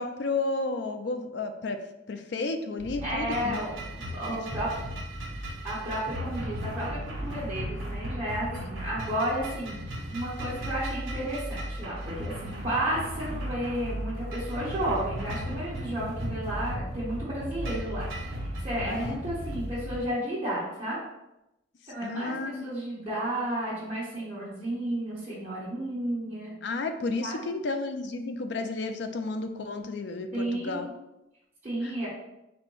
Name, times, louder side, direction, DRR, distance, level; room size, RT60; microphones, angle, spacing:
voice 1, 0.0-1.8 2.1-3.6 4.3-4.4 18.8-19.2 22.0-22.7 26.6-30.9 31.8-32.1, left 3 dB, 60° left, 7 dB, 0.4 m, -32 dB
sound 1, 2.8-20.0, equal, 85° right, 1.1 m, -36 dB
voice 2, 3.0-4.7 5.6-21.0 21.9-26.6 27.2-27.4 30.3-30.9 31.6-32.1, right 1 dB, 35° right, -11 dB, 1.4 m, -32 dB
4.2 x 2.2 x 4.6 m, 0.90 s
head